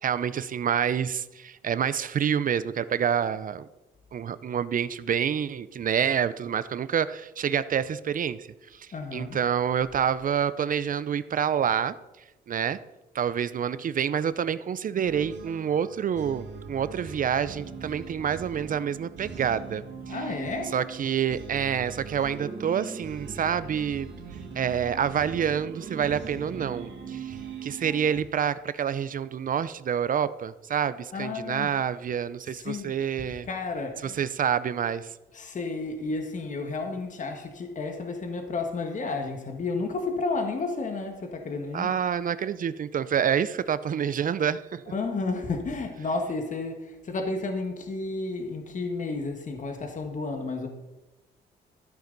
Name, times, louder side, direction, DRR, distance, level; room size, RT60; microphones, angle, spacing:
voice 1, 0.0-3.7 4.1-12.0 12.5-12.8 13.1-19.8 20.7-24.1 24.5-33.5 34.0-35.1 41.7-44.8, right 8 dB, 50° right, 0.6 m, -27 dB
voice 2, 8.9-9.4 20.1-20.8 31.1-31.8 32.5-34.2 35.3-41.9 44.9-50.7, left 3 dB, 45° left, 1.7 m, -32 dB
sound 1, 15.0-28.2, right 5 dB, 75° right, 2.3 m, -40 dB
13.5 x 8.6 x 4.0 m
cardioid pair, 85°, 18 cm